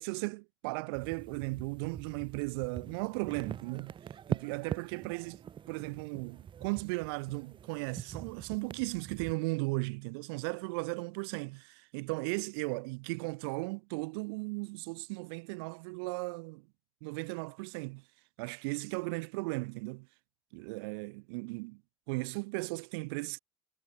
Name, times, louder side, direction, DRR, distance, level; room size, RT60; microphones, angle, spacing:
voice 1, 0.0-3.9 4.3-16.7 17.0-18.0 18.4-20.1 20.5-21.8 22.1-23.4, right 29 dB, 65° right, 0.9 m, -36 dB
sound 1, 0.9-9.3, right 9 dB, 35° right, 1.4 m, -43 dB
figure-of-eight pair, 60°, 14 cm